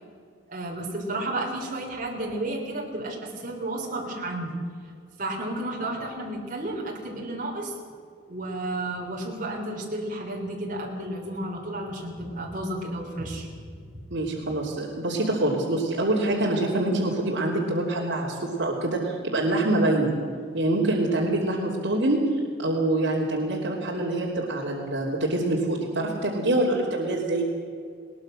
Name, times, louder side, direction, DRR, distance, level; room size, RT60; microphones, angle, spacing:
voice 1, 0.5-4.6 5.2-7.7 8.3-13.5 13.9-14.0, right 1 dB, 40° right, -1 dB, 3.6 m, -32 dB
voice 2, 14.1-20.1 20.5-22.2 22.6-27.5, right 1 dB, 65° right, -5 dB, 3.1 m, -25 dB
21.5 x 19.5 x 6.4 m, 2.3 s
head